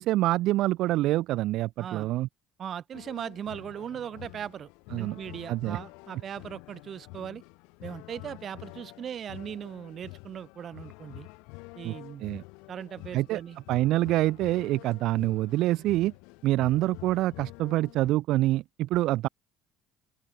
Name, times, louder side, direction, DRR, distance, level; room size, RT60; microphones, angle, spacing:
voice 1, 0.0-2.3 4.9-5.2 5.5-5.8 11.8-11.9 12.2-12.4 13.1-13.4 13.7-16.1 16.4-19.3, right 16 dB, 70° right, 0.5 m, -26 dB
voice 2, 1.8-2.1 2.6-7.4 7.8-11.3 11.7-12.3 12.7-13.6, right 9 dB, 50° right, 2.9 m, -39 dB
sound 1, 2.9-18.1, left 30 dB, 80° left, 4.2 m, -47 dB
open air
supercardioid pair, 70°, 0 cm